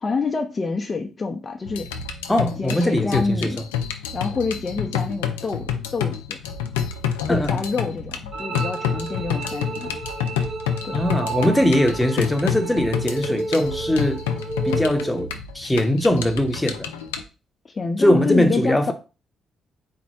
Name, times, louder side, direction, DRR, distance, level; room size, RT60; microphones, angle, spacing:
voice 1, 0.0-1.9 2.6-3.6 4.1-6.4 7.2-9.9 10.8-11.0 17.6-18.9, left 4 dB, 40° left, 0.6 m, -27 dB
sound 1, 1.7-17.2, left 8 dB, 90° left, 0.4 m, -29 dB
voice 2, 2.3-3.5 7.3-7.6 10.9-14.2 14.6-15.3 15.5-16.9 18.0-18.9, left 1 dB, 10° left, 0.9 m, -21 dB
sound 2, 8.3-15.3, right 3 dB, 50° right, 0.7 m, -31 dB
4.3 x 2.1 x 4.3 m
hypercardioid pair, 45°, 0 cm